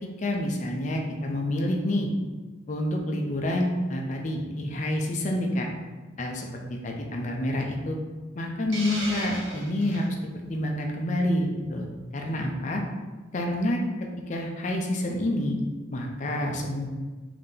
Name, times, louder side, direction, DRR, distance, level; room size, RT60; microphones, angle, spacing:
voice 1, 0.0-2.1 2.7-5.7 6.2-8.0 8.4-10.2 10.5-11.9 12.1-12.8 13.3-13.8 14.3-15.6 15.9-16.9, left 1 dB, 35° left, 1 dB, 0.5 m, -28 dB
Hiss, 8.7-10.1, right 1 dB, 70° right, 1.2 m, -35 dB
3.7 x 2.7 x 3.5 m, 1.3 s
head